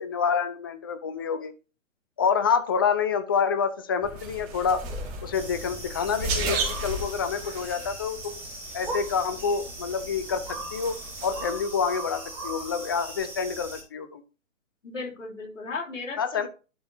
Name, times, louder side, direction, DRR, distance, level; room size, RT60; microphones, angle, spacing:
voice 1, 0.0-1.5 2.2-4.9 5.2-8.4 8.7-14.2 16.2-16.5, left 6 dB, 20° left, 11 dB, 0.4 m, -27 dB
sound 1, 4.0-11.6, right 2 dB, 25° right, 3.5 m, -35 dB
sound 2, 5.3-13.8, right 2 dB, 5° right, 3.3 m, -39 dB
voice 2, 14.8-16.5, left 3 dB, 65° left, -2 dB, 3.6 m, -36 dB
11.5 x 6.5 x 2.7 m, 0.32 s
figure-of-eight pair, 125°, 40 cm